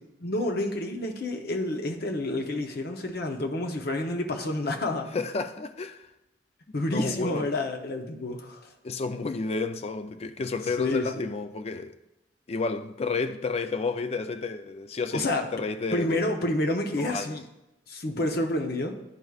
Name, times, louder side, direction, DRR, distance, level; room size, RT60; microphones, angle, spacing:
voice 1, 0.2-5.1 6.7-8.6 10.8-11.2 15.1-15.5 15.9-17.4 17.9-19.0, left 1 dB, 60° left, 0.8 m, -29 dB
voice 2, 5.1-6.1 6.9-7.5 8.8-12.0 12.5-16.3 17.0-17.4, left 4 dB, 35° left, 0.4 m, -31 dB
10.5 x 4.8 x 2.3 m
head